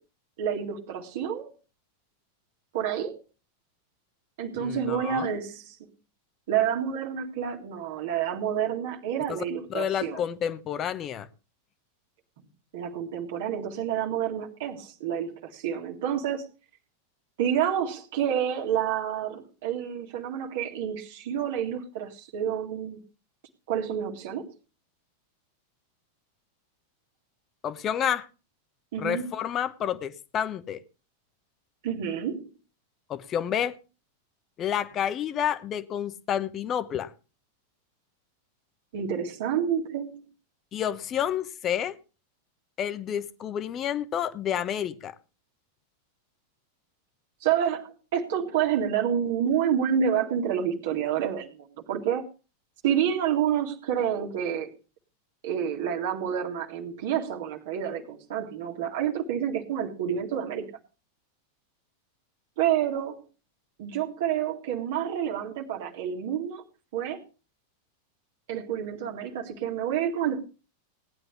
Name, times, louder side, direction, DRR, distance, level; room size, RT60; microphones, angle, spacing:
voice 1, 0.4-1.5 2.7-3.2 4.4-5.8 6.5-10.2 12.7-16.5 17.4-23.0 23.7-24.5 28.9-29.2 31.8-32.5 38.9-40.2 47.4-51.5 51.9-52.2 52.8-54.7 55.4-60.7 62.6-63.2 63.8-66.6 66.9-67.2 68.5-70.4, right 9 dB, 55° right, 2.0 m, -28 dB
voice 2, 4.6-5.3 9.3-9.4 9.7-11.3 27.6-28.3 29.0-30.8 33.1-33.8 34.6-37.1 40.7-42.0 42.8-45.1, left 9 dB, 30° left, 1.0 m, -29 dB
17.5 x 10.5 x 3.4 m
figure-of-eight pair, 90°, 0 cm